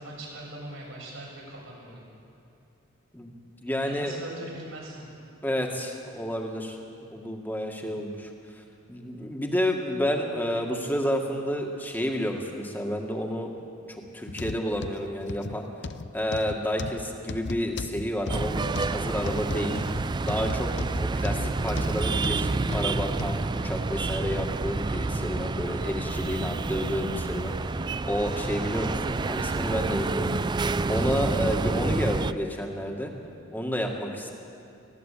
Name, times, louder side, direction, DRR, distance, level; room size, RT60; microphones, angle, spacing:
voice 1, 0.0-2.0 3.8-5.1 30.8-31.4, right 1 dB, 85° right, -3 dB, 7.0 m, -41 dB
voice 2, 3.6-4.2 5.4-6.8 7.1-8.3 8.9-13.5 14.1-15.7 16.1-19.8 20.2-27.5 28.1-30.4 30.9-33.1 33.5-34.3, equal, 10° left, 2 dB, 1.9 m, -30 dB
sound 1, 14.3-23.4 23.9-24.1 24.7-24.8, left 3 dB, 60° left, 0.6 m, -36 dB
sound 2, 18.3-32.3, right 3 dB, 20° right, 0.4 m, -29 dB
19.0 x 16.0 x 8.5 m, 2.6 s
head